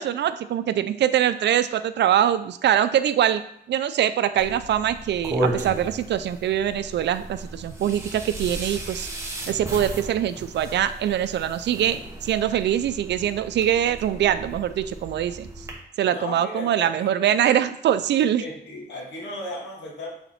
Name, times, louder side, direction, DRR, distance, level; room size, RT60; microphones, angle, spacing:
voice 1, 0.0-3.4 3.7-9.1 9.5-15.5 16.0-18.4, right 10 dB, 75° right, 12 dB, 0.5 m, -23 dB
sound 1, 4.4-15.7, right 1 dB, 15° right, 1.1 m, -35 dB
voice 2, 16.1-17.1 18.4-20.1, left 1 dB, 90° left, -2 dB, 2.2 m, -35 dB
8.2 x 4.3 x 4.3 m, 0.72 s
wide cardioid pair, 180°, 18 cm